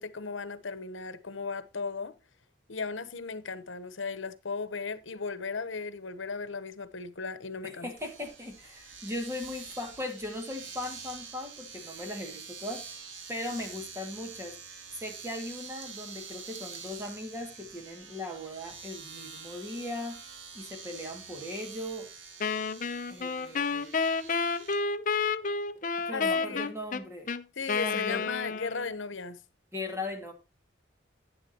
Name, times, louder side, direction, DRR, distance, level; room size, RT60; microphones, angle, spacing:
voice 1, 0.0-2.1 2.7-7.9 26.1-26.7 27.6-29.4, left 4 dB, 80° left, 1.1 m, -36 dB
voice 2, 7.6-13.0 13.3-14.6 15.0-20.2 20.5-22.1 23.1-23.9 26.1-27.3 27.8-28.2 29.7-30.3, left 1 dB, 15° right, 2.2 m, -38 dB
Domestic sounds home sounds, 8.0-24.8, right 5 dB, 85° right, 1.9 m, -46 dB
Wind instrument woodwind instrument, 22.4-29.0, left 4 dB, 40° left, 0.6 m, -30 dB
11.0 x 10.0 x 2.9 m
head